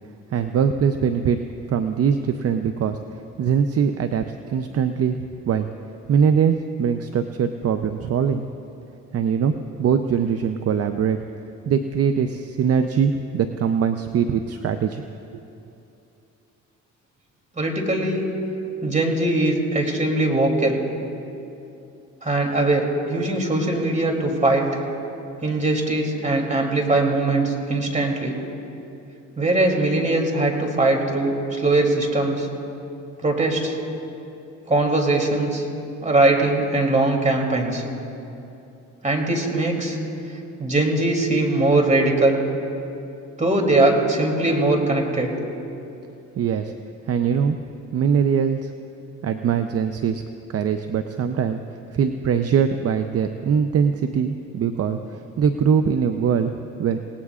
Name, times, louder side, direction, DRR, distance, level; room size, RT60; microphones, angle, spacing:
voice 1, 0.3-1.4 1.7-5.2 5.5-5.7 6.1-8.5 9.1-11.2 11.6-15.0 15.3-15.4 46.4-46.7 47.1-47.6 47.9-48.7 49.2-50.2 50.5-51.6 51.9-56.5 56.8-57.0, right 7 dB, 50° right, 8 dB, 0.7 m, -22 dB
voice 2, 17.5-18.2 18.8-20.8 22.2-24.8 25.4-28.3 29.4-32.5 33.2-33.8 34.7-35.7 36.0-37.8 39.0-40.0 40.6-42.4 43.4-45.3, right 2 dB, 25° right, 1 dB, 3.0 m, -21 dB
27.5 x 18.5 x 2.5 m, 2.8 s
cardioid pair, 90°, 30 cm